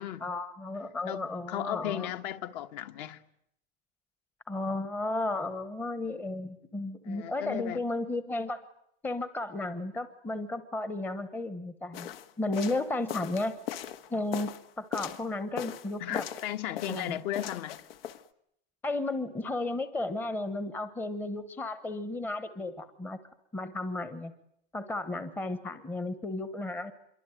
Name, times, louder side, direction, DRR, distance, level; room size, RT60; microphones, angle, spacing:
voice 1, 0.2-2.1 4.5-8.6 9.0-12.1 12.4-13.5 14.1-16.2 16.9-17.2 18.8-23.2 23.5-24.3 24.7-26.9, left 2 dB, 5° left, 1.0 m, -34 dB
voice 2, 1.1-3.2 7.0-7.8 16.0-17.8, left 11 dB, 45° left, 1.4 m, -35 dB
sound 1, 11.9-15.2 15.6-16.5 16.8-18.2, left 11 dB, 75° left, 1.7 m, -39 dB
27.0 x 23.5 x 9.1 m
supercardioid pair, 170°, 30 cm